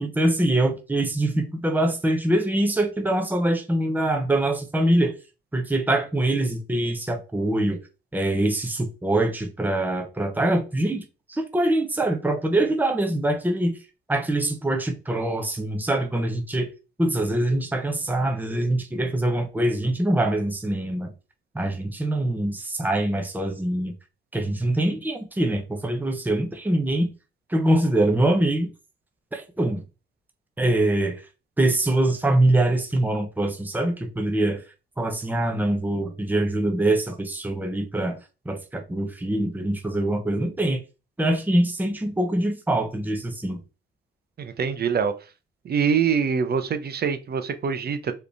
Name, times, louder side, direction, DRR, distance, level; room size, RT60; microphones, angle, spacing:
voice 1, 0.0-5.1 5.5-7.8 8.1-11.0 11.3-13.8 14.1-16.7 17.0-21.1 21.5-23.9 24.3-27.1 27.5-28.7 29.3-29.8 30.6-31.2 31.6-34.6 35.0-38.2 38.4-40.8 41.2-43.6, right 1 dB, 10° right, 1.0 m, -24 dB
voice 2, 44.4-45.1 45.6-48.1, right 6 dB, 50° right, 0.8 m, -24 dB
4.7 x 3.2 x 3.4 m
cardioid pair, 80°, 21 cm